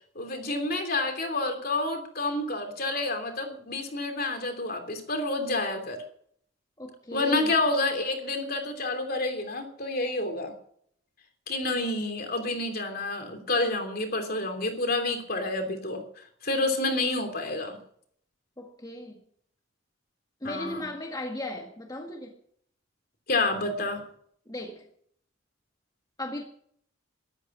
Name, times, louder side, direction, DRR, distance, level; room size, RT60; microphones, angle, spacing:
voice 1, 0.1-6.0 7.1-10.5 11.5-16.0 16.4-17.8 20.4-20.9 23.3-24.0, left 2 dB, 50° left, 5 dB, 3.1 m, -29 dB
voice 2, 6.8-7.6 11.8-11.9 18.6-19.2 20.4-22.3 24.5-24.8 26.2-26.4, left 1 dB, 20° left, 1 dB, 1.8 m, -37 dB
13.5 x 12.5 x 6.1 m, 0.63 s
head